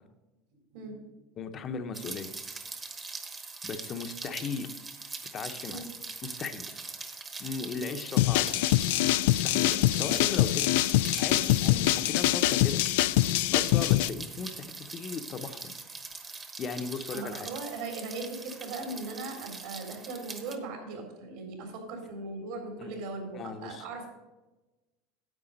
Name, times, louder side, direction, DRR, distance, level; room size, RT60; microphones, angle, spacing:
voice 1, 1.4-2.3 3.6-4.8 5.3-5.9 6.2-6.8 7.4-8.8 9.4-10.6 11.2-12.8 13.5-15.7 16.3-17.5 22.8-22.9 23.3-23.9, left 5 dB, 30° left, 7 dB, 0.8 m, -37 dB
Rain, 1.9-20.6, right 4 dB, 20° right, 1.1 m, -42 dB
sound 1, 8.2-14.1, left 16 dB, 80° left, 0.3 m, -24 dB
voice 2, 17.1-24.1, right 3 dB, 65° right, 3 dB, 3.8 m, -39 dB
10.0 x 8.2 x 5.2 m, 1.1 s
cardioid pair, 155°, 0 cm